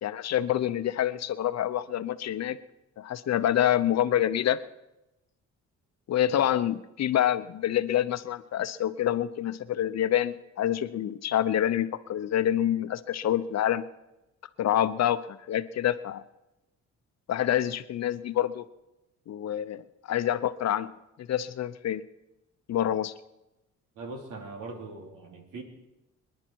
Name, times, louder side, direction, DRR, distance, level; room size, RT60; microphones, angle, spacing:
voice 1, 0.0-2.6 3.0-4.6 6.1-13.8 14.6-16.2 17.3-18.6 19.3-20.9 21.2-22.0 22.7-23.1, left 11 dB, 60° left, 13 dB, 0.8 m, -27 dB
voice 2, 23.9-25.6, right 3 dB, 85° right, 3 dB, 3.1 m, -41 dB
25.5 x 10.5 x 4.6 m, 0.95 s
cardioid pair, 90°, 30 cm